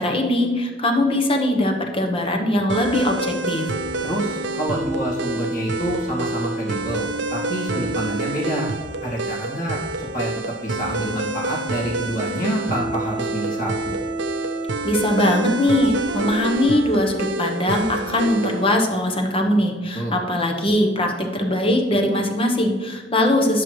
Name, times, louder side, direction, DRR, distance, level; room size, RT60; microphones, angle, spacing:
voice 1, 0.0-3.7 14.8-23.6, left 1 dB, 30° left, 3 dB, 1.0 m, -21 dB
sound 1, 2.7-18.7, right 2 dB, 70° right, 0.6 m, -27 dB
voice 2, 4.0-8.7 9.0-14.0 19.9-20.2, right 1 dB, 50° left, -5 dB, 2.0 m, -27 dB
10.5 x 6.1 x 3.2 m, 1.4 s
head